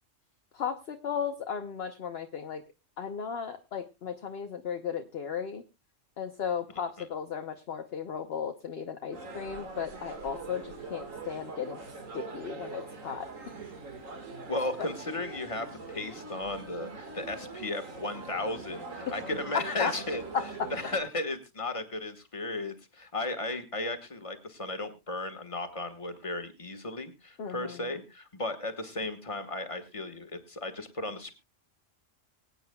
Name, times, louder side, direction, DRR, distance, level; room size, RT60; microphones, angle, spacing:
voice 1, 0.5-2.6 3.0-5.6 6.2-11.8 12.1-13.3 19.5-19.9 20.3-20.7 27.4-27.9, left 7 dB, 55° left, 6 dB, 1.0 m, -35 dB
sound 1, 9.1-21.0, right 3 dB, 85° right, 2.2 m, -43 dB
voice 2, 14.5-20.2 20.7-31.3, left 2 dB, 25° left, 7 dB, 1.6 m, -35 dB
24.5 x 8.9 x 2.2 m, 0.24 s
omnidirectional pair, 1.3 m